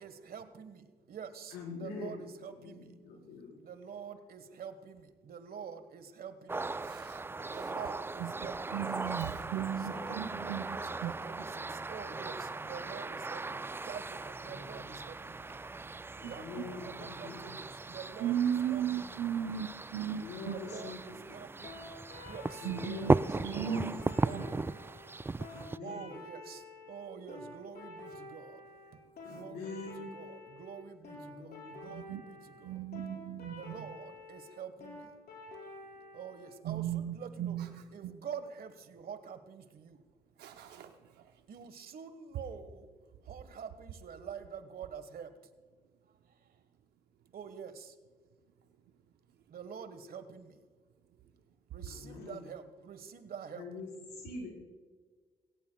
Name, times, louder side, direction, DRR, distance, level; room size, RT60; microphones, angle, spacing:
voice 1, 0.0-2.9 3.6-6.8 7.5-8.9 9.8-15.6 16.3-19.3 20.4-22.0 22.3-22.7 23.3-24.8 25.8-28.6 29.3-32.8 33.5-35.1 36.1-37.6 37.9-40.0 41.5-42.9 43.2-45.4 47.3-48.0 49.5-50.6 51.7-53.7, right 7 dB, 65° right, 11 dB, 1.4 m, -47 dB
voice 2, 1.5-2.2 2.6-3.6 9.6-10.2 14.4-15.0 16.2-17.6 20.0-21.4 22.6-23.9 25.5-26.0 29.2-30.2 31.1-31.8 51.9-52.4 53.6-54.5, left 3 dB, 90° left, -1 dB, 4.3 m, -45 dB
sound 1, 6.5-25.8, right 3 dB, 15° right, 0.3 m, -37 dB
voice 3, 6.8-7.7 8.2-8.3 8.7-10.6 11.0-11.1 16.2-16.3 18.2-20.6 22.6-23.1 23.4-24.0 24.3-24.5 31.9-32.2 32.6-33.9 36.6-37.8 40.4-40.9, right 9 dB, 80° right, 6 dB, 0.8 m, -36 dB
sound 2, 21.6-36.5, left 2 dB, 70° left, 5.2 m, -49 dB
20.5 x 17.0 x 2.3 m, 1.4 s
supercardioid pair, 55°, 17 cm